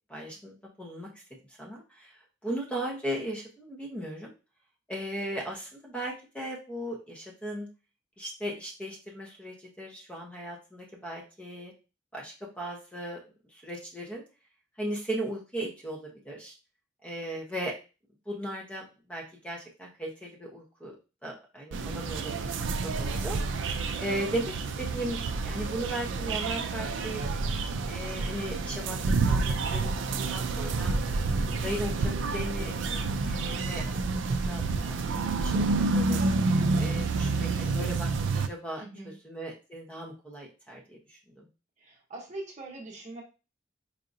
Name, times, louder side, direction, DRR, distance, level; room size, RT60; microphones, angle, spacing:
voice 1, 0.1-1.1 1.5-2.1 2.4-4.3 4.9-7.7 8.2-11.7 12.1-13.2 13.5-14.2 14.8-16.5 17.0-17.7 18.3-21.0 21.2-23.4 24.0-25.2 25.4-27.2 27.9-29.9 30.3-30.9 31.5-34.2 34.5-36.2 36.7-38.1 38.3-41.5, right 1 dB, 5° left, -2 dB, 0.9 m, -37 dB
sound 1, 21.7-38.5, right 3 dB, 80° right, 0.4 m, -29 dB
voice 2, 38.8-39.2 41.8-43.2, right 2 dB, 40° right, 0 dB, 0.9 m, -42 dB
4.8 x 2.8 x 2.6 m, 0.30 s
head